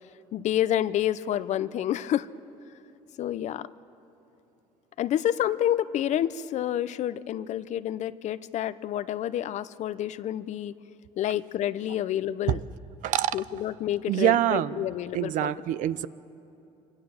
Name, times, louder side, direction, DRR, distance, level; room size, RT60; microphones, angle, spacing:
voice 1, 0.3-2.3 3.2-3.7 5.0-10.7 11.2-12.6 13.3-15.5, left 11 dB, 60° left, 16 dB, 0.7 m, -28 dB
voice 2, 13.0-13.4 14.1-14.9 15.1-16.1, right 13 dB, 70° right, 16 dB, 0.7 m, -25 dB
26.0 x 24.5 x 7.2 m, 2.9 s
cardioid pair, 95°, 14 cm